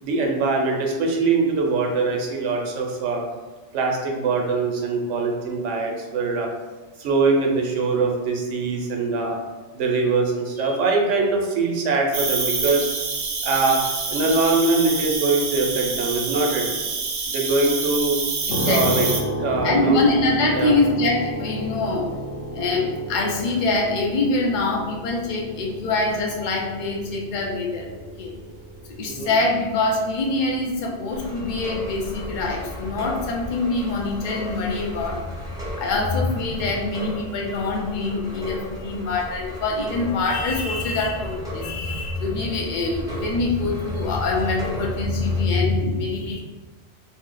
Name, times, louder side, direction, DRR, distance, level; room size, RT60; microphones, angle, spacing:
voice 1, 0.0-3.2 3.7-6.5 7.0-9.4 9.7-12.9 13.4-13.8 14.1-16.7 17.3-18.2 18.6-19.1 19.4-20.0 20.6-20.8 29.0-29.4, right 3 dB, 85° right, 0 dB, 1.0 m, -22 dB
Cricket, 12.1-19.2, right 4 dB, 60° right, 0.7 m, -27 dB
sound 1, 18.5-33.2, equal, 80° left, 0.9 m, -33 dB
voice 2, 18.5-19.0 19.6-22.1 22.5-27.9 28.2-28.4 29.0-35.4 35.8-46.4, left 2 dB, 55° left, -1 dB, 0.6 m, -24 dB
sound 2, 31.1-45.5, left 1 dB, 5° right, 0.5 m, -36 dB
2.7 x 2.0 x 3.7 m, 1.3 s
omnidirectional pair, 1.2 m